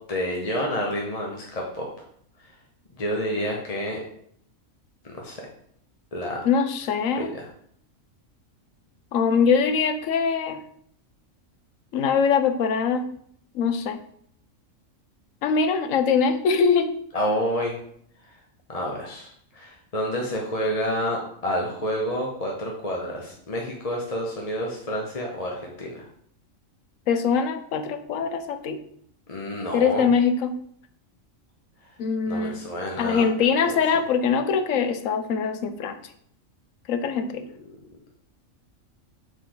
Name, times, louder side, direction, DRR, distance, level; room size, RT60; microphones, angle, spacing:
voice 1, 0.1-1.9 3.0-4.0 5.0-5.5 6.1-6.4 7.1-7.5 17.1-17.8 18.7-19.3 19.5-26.0 29.3-30.1 32.3-33.3 33.7-33.8, equal, 30° left, -1 dB, 0.9 m, -29 dB
voice 2, 6.4-7.3 9.1-10.6 11.9-13.1 13.5-14.0 15.4-16.9 27.1-28.8 29.7-30.6 32.0-32.6 33.0-36.0 36.9-37.5, left 6 dB, 75° left, 9 dB, 1.1 m, -22 dB
6.6 x 5.0 x 3.9 m, 0.66 s
omnidirectional pair, 1.4 m